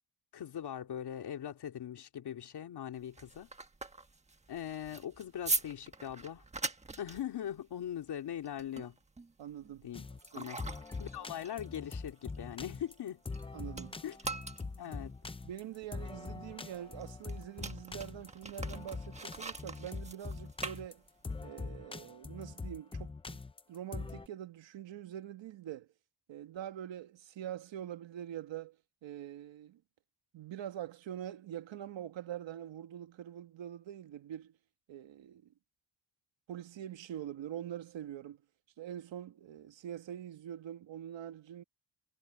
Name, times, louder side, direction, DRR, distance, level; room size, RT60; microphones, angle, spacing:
voice 1, 0.3-3.5 4.5-6.4 7.0-9.0 9.8-10.0 10.3-10.6 11.0-13.2 14.0-14.2 14.8-15.2, left 10 dB, 60° left, 2.8 m, -41 dB
sound 1, 2.9-13.4 13.7-21.4, right 3 dB, 15° right, 1.3 m, -42 dB
voice 2, 9.4-9.9 10.3-10.5 13.5-14.0 14.6-15.0 15.4-21.0 21.4-23.4 23.7-25.9 26.3-28.8 29.0-29.8 30.3-34.5 34.9-35.5 36.5-38.4 38.8-41.6, right 10 dB, 85° right, 1.7 m, -44 dB
sound 2, 9.9-24.3, left 4 dB, 15° left, 0.5 m, -43 dB
wide cardioid pair, 165°, 44 cm